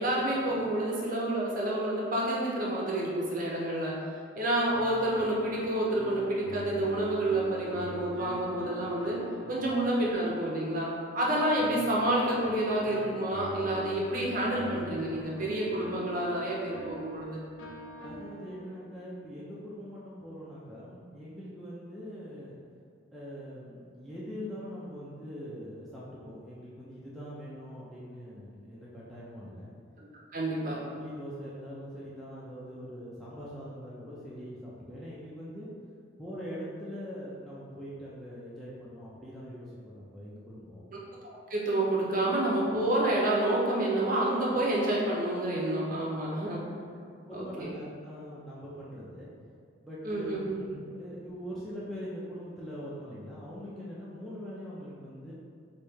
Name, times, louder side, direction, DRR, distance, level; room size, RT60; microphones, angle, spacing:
voice 1, 0.0-3.9 4.4-9.2 9.5-10.9 11.1-17.4 30.0-30.1 30.3-30.8 41.2-46.6 47.3-47.7 50.0-50.6, right 1 dB, 40° right, -4 dB, 0.6 m, -29 dB
sound 1, 4.7-10.5 11.6-19.0, left 1 dB, 85° left, 0.4 m, -44 dB
voice 2, 9.4-9.7 18.0-22.6 23.1-29.7 30.9-35.7 36.2-40.8 47.0-49.3 49.8-55.3, equal, ahead, -9 dB, 0.4 m, -42 dB
3.1 x 2.7 x 3.4 m, 2.2 s
head